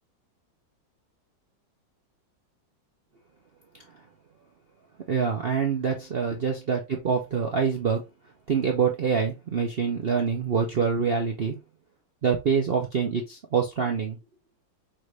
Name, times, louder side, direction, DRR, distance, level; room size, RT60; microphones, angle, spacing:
voice 1, 5.1-8.0 8.5-11.6 12.2-14.2, right 6 dB, 80° right, 0.5 m, -25 dB
5.8 x 2.6 x 3.1 m
omnidirectional pair, 2.1 m